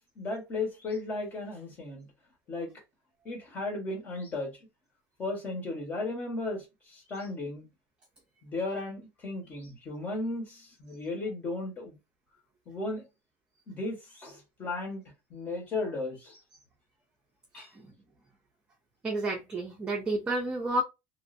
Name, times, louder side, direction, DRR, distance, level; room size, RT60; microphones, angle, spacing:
voice 1, 0.2-2.1 2.5-2.7 3.2-4.6 5.2-7.7 8.4-12.0 12.7-13.0 13.7-15.0 15.3-16.4 17.5-17.7, left 2 dB, 25° left, 1.2 m, -35 dB
voice 2, 17.6-17.9 19.0-20.8, right 1 dB, 15° right, 0.6 m, -31 dB
3.0 x 2.5 x 2.5 m
cardioid pair, 165°, 8 cm